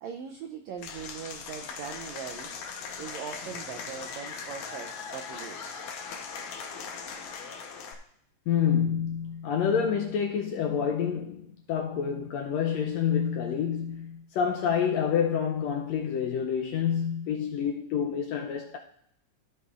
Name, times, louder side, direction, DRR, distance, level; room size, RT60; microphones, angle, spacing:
voice 1, 0.0-2.5 3.0-5.8, right 7 dB, 90° right, 1.5 m, -40 dB
Applause / Crowd, 0.8-7.9, left 5 dB, 70° left, 2.2 m, -39 dB
voice 2, 8.5-18.8, left 7 dB, 85° left, 1.5 m, -28 dB
15.0 x 8.0 x 2.5 m
omnidirectional pair, 3.9 m